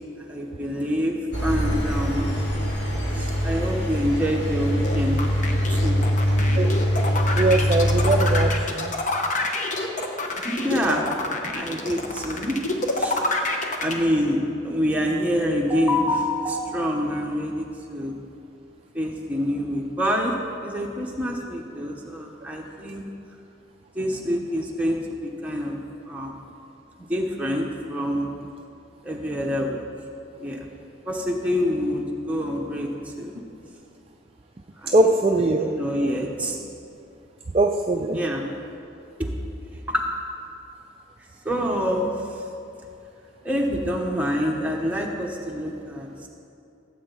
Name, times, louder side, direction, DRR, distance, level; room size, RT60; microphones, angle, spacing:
voice 1, 0.2-2.4 3.2-5.2 5.7-6.1 10.6-11.0 11.5-12.6 13.0-13.2 13.8-18.2 18.9-20.3 20.6-23.0 23.9-25.8 26.1-26.4 27.0-28.3 29.0-29.8 30.4-30.7 31.1-33.4 34.8-35.1 35.5-36.6 38.1-38.4 39.2-39.3 39.9-40.0 41.4-42.1 43.4-46.3, equal, 5° right, -1 dB, 1.1 m, -26 dB
Engine, 1.3-8.5, equal, 55° left, 2.2 m, -23 dB
sound 1, 4.8-13.9, left 2 dB, 35° left, 0.9 m, -27 dB
voice 2, 7.1-8.9 34.9-35.7 37.5-38.2, right 2 dB, 30° right, 2 dB, 0.4 m, -21 dB
17.0 x 8.1 x 4.0 m, 2.7 s
head